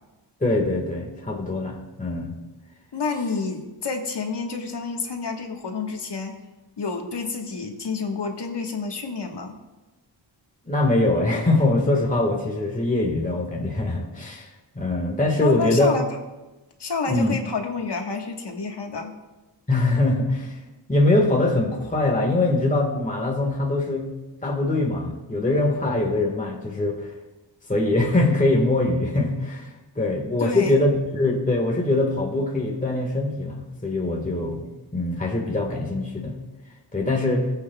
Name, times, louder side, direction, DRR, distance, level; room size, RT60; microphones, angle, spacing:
voice 1, 0.4-2.3 10.6-14.5 14.7-15.9 17.1-17.4 19.7-20.6 20.9-24.1 24.4-27.1 27.7-29.7 29.9-34.7 34.9-36.4 36.9-37.5, left 2 dB, 15° left, 0 dB, 1.6 m, -23 dB
voice 2, 2.9-6.3 6.8-9.5 15.4-16.1 16.8-19.1 30.4-30.8, left 4 dB, 65° left, 2 dB, 1.5 m, -29 dB
19.5 x 8.0 x 2.3 m, 1.1 s
wide cardioid pair, 90°, 44 cm